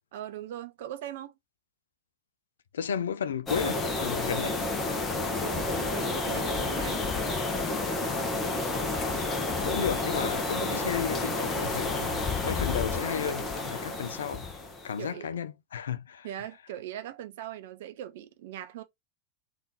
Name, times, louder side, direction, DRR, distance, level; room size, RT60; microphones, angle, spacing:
voice 1, 0.1-1.3 5.4-7.0 15.0-15.4 16.2-18.8, right 12 dB, 55° right, 0.7 m, -40 dB
voice 2, 2.7-4.6 9.6-14.5 14.8-16.3, left 7 dB, 65° left, 0.4 m, -33 dB
sound 1, 3.5-15.0, left 3 dB, 20° left, 0.9 m, -30 dB
3.6 x 2.6 x 4.1 m
figure-of-eight pair, 90°, 0 cm